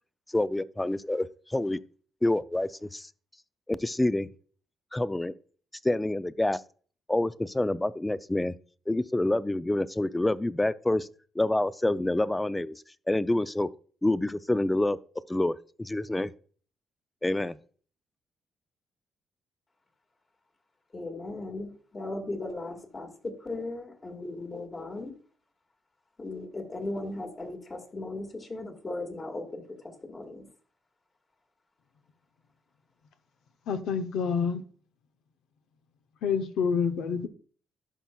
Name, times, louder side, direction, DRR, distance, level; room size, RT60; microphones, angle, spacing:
voice 1, 0.3-1.8 2.2-3.1 3.7-4.3 4.9-5.3 5.8-6.6 7.1-8.6 8.9-11.1 11.4-13.7 14.0-15.0 15.3-16.3 17.2-17.6, left 1 dB, 10° left, 0.4 m, -27 dB
voice 2, 20.9-25.1 26.2-30.5, left 2 dB, 30° left, 1.8 m, -37 dB
voice 3, 33.7-34.6 36.2-37.3, left 6 dB, 85° left, 0.7 m, -27 dB
12.0 x 5.5 x 2.3 m
cardioid pair, 90°, 0 cm